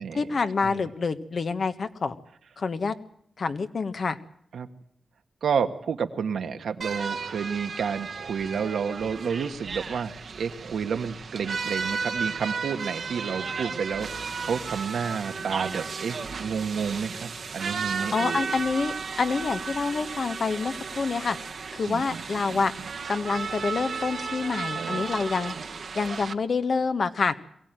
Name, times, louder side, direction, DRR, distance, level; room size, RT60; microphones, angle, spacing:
voice 1, 0.1-2.1 2.6-3.0 3.4-4.2 18.1-21.4 21.7-22.7 23.1-25.5 25.9-27.3, left 4 dB, 65° left, 9 dB, 1.4 m, -27 dB
voice 2, 5.4-18.5 21.8-22.2 22.5-22.6 24.8-25.0, right 6 dB, 85° right, 7 dB, 1.5 m, -30 dB
sound 1, 6.8-26.3, right 5 dB, 70° right, 1.3 m, -34 dB
22.5 x 16.0 x 9.1 m, 0.71 s
cardioid pair, 50°, 0 cm